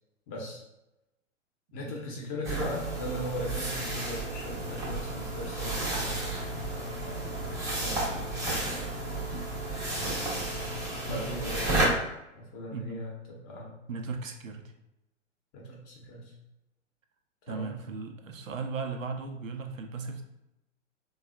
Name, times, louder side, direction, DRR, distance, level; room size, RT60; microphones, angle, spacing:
voice 1, 0.3-0.6 1.7-7.4 7.7-8.2 11.1-11.8 12.5-13.8 15.5-16.3 17.5-17.7, left 1 dB, 30° left, -2 dB, 0.8 m, -39 dB
sound 1, 2.4-11.9, right 2 dB, 10° right, 0.6 m, -32 dB
voice 2, 12.7-13.1 13.9-14.7 17.5-20.2, right 4 dB, 80° right, 4 dB, 0.5 m, -37 dB
3.3 x 2.3 x 2.2 m, 0.93 s
figure-of-eight pair, 110°, 38 cm